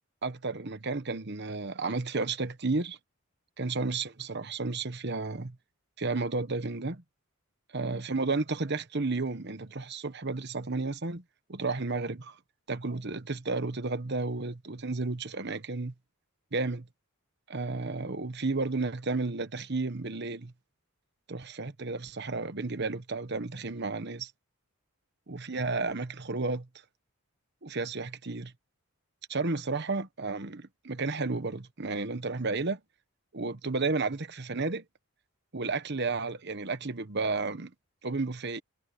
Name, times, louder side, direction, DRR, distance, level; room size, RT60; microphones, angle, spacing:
voice 1, 0.2-3.0 3.6-5.6 6.0-7.0 7.7-11.2 11.5-12.4 12.7-15.9 16.5-16.9 17.5-20.5 21.3-24.3 25.3-26.7 27.6-28.5 29.3-32.8 33.3-34.8 35.5-37.7 38.0-38.6, right 3 dB, 50° right, 1.2 m, -32 dB
head